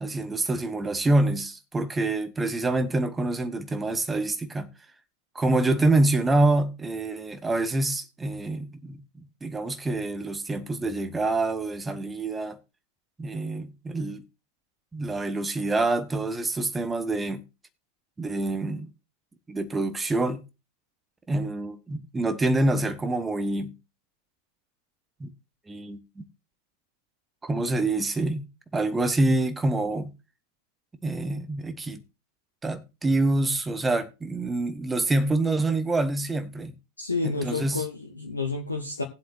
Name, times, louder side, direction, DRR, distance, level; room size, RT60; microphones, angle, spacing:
voice 1, 0.0-4.7 5.3-9.0 9.4-12.6 13.2-14.2 14.9-17.4 18.2-18.9 19.5-20.4 21.3-23.7 25.2-25.3 25.7-26.2 27.4-30.1 31.0-32.0 32.6-36.7 37.2-37.8, right 2 dB, 10° right, 1.1 m, -26 dB
voice 2, 37.0-39.0, left 3 dB, 80° left, 1.4 m, -30 dB
20.0 x 7.8 x 2.6 m
figure-of-eight pair, 90°, 0 cm